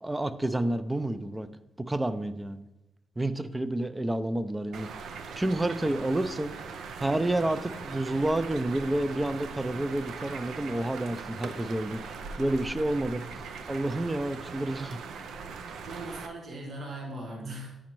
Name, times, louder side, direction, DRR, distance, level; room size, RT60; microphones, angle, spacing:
voice 1, 0.0-1.5 1.8-2.6 3.2-4.9 5.4-6.5 7.0-12.0 12.4-13.2 13.7-15.0, right 1 dB, 20° right, 12 dB, 0.5 m, -29 dB
sound 1, 4.7-16.3, right 5 dB, 80° right, 0.5 m, -40 dB
voice 2, 15.8-17.8, right 1 dB, 60° right, 0 dB, 1.1 m, -39 dB
8.4 x 5.1 x 3.0 m, 0.98 s
supercardioid pair, 50°, 0 cm